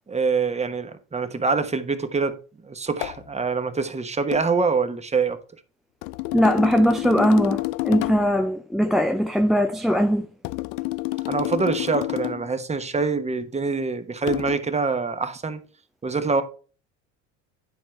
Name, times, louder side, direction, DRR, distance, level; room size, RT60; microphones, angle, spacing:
voice 1, 0.1-5.4 11.3-15.6 16.0-16.4, right 4 dB, 20° right, 1.1 m, -25 dB
sound 1, 3.0-3.3 4.3-4.5 6.0-8.4 10.4-12.5 14.3-14.6, left 20 dB, 65° left, 0.5 m, -29 dB
voice 2, 6.3-10.3, equal, ahead, 0.4 m, -20 dB
10.0 x 4.4 x 4.5 m
hypercardioid pair, 75°, 35 cm